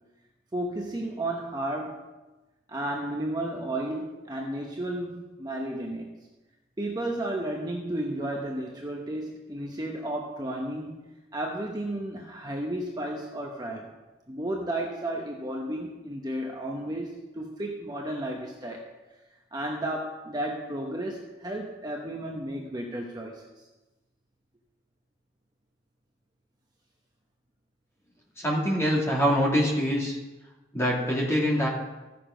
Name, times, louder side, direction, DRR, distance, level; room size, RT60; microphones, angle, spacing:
voice 1, 0.5-2.0 2.7-6.1 6.8-10.9 11.3-13.9 14.3-18.9 19.5-23.4, right 1 dB, 20° right, 0 dB, 0.9 m, -33 dB
voice 2, 28.4-30.2 30.7-31.7, equal, 15° left, -3 dB, 2.5 m, -24 dB
14.5 x 6.9 x 5.1 m, 1.1 s
head